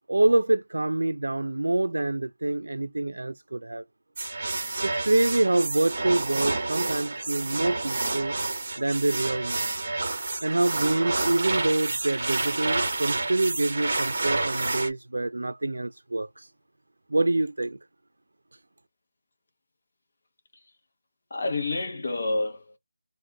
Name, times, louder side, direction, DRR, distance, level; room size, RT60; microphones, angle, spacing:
voice 1, 0.1-3.8 4.8-9.7 10.4-16.5 17.1-17.8, right 2 dB, 80° right, 0.3 m, -26 dB
sound 1, 4.2-14.9, right 2 dB, 30° right, 0.7 m, -29 dB
voice 2, 21.3-22.8, left 2 dB, 35° left, 0.8 m, -29 dB
2.4 x 2.1 x 3.4 m
figure-of-eight pair, 180°, 0 cm